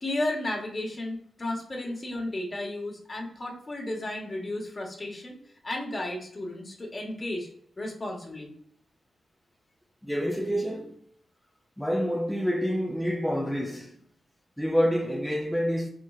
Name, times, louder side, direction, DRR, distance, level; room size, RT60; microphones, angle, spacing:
voice 1, 0.0-5.4 5.6-7.5 7.8-8.5, left 1 dB, 35° left, 1.4 m, -33 dB
voice 2, 10.0-11.0 11.8-14.0 14.6-15.9, equal, 5° left, 0.5 m, -27 dB
4.4 x 3.1 x 2.3 m
cardioid pair, 70°, 0 cm